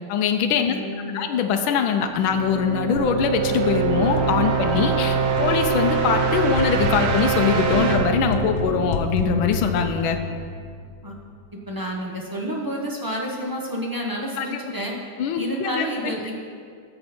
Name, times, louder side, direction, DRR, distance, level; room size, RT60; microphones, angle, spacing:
voice 1, 0.1-0.8 1.1-10.2 14.4-14.6 15.2-16.1, left 7 dB, 80° left, 6 dB, 1.5 m, -23 dB
voice 2, 0.7-1.3 11.0-11.1 11.7-15.0 15.4-16.3, equal, 20° right, -2 dB, 0.6 m, -29 dB
sound 1, 2.1-9.9, right 6 dB, 60° right, 0.9 m, -24 dB
sound 2, 2.9-10.2, right 1 dB, 90° right, 2.1 m, -38 dB
sound 3, 3.0-11.6, left 3 dB, 65° left, 1.0 m, -32 dB
13.5 x 6.7 x 4.3 m, 2.1 s
omnidirectional pair, 2.2 m